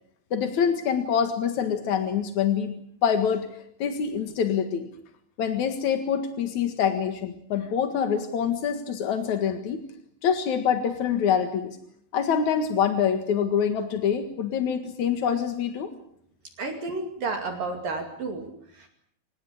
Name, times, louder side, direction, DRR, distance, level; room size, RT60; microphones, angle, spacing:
voice 1, 0.3-2.7 3.0-3.5 3.8-4.9 5.4-9.8 10.2-11.8 12.1-15.9, left 7 dB, 60° left, 7 dB, 2.0 m, -25 dB
voice 2, 16.6-18.9, right 3 dB, 50° right, 4 dB, 3.6 m, -32 dB
25.5 x 19.5 x 8.5 m, 0.69 s
omnidirectional pair, 5.8 m